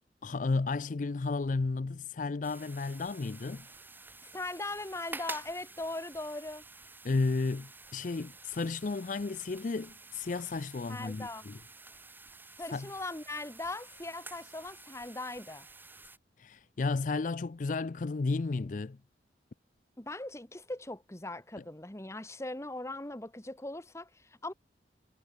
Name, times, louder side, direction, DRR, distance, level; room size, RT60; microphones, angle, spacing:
voice 1, 0.2-3.7 7.0-11.6 12.7-12.9 16.4-19.0, left 3 dB, 45° left, 0.5 m, -33 dB
sound 1, 2.4-16.2, right 3 dB, 10° right, 3.7 m, -50 dB
voice 2, 4.3-6.6 10.9-11.4 12.6-15.7 20.0-24.5, left 2 dB, 15° left, 1.5 m, -40 dB
head